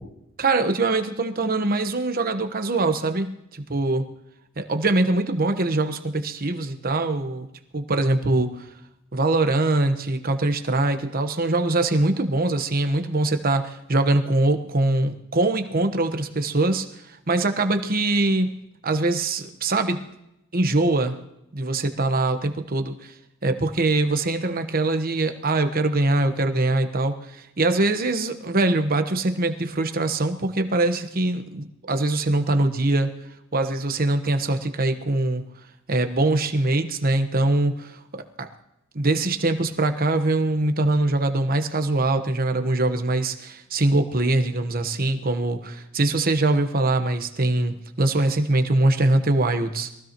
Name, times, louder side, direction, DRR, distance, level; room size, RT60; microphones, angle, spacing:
voice 1, 0.4-4.1 4.6-7.5 7.7-8.7 9.1-20.0 20.5-21.2 21.5-23.1 23.4-33.1 33.5-35.4 35.9-38.5 38.9-49.9, right 2 dB, 40° right, 7 dB, 1.2 m, -23 dB
22.5 x 16.0 x 3.0 m, 0.83 s
head